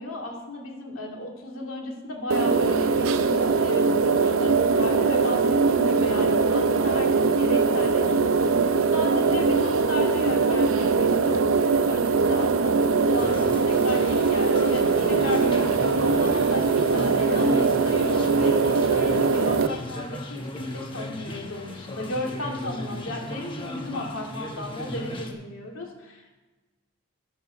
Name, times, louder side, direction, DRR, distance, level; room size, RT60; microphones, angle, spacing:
voice 1, 0.0-26.3, left 1 dB, 80° left, 0 dB, 2.5 m, -35 dB
sound 1, 2.3-19.7, right 4 dB, 85° right, 0.6 m, -21 dB
sound 2, 13.2-25.3, left 1 dB, 25° left, 1.1 m, -37 dB
13.0 x 7.6 x 5.0 m, 1.2 s
head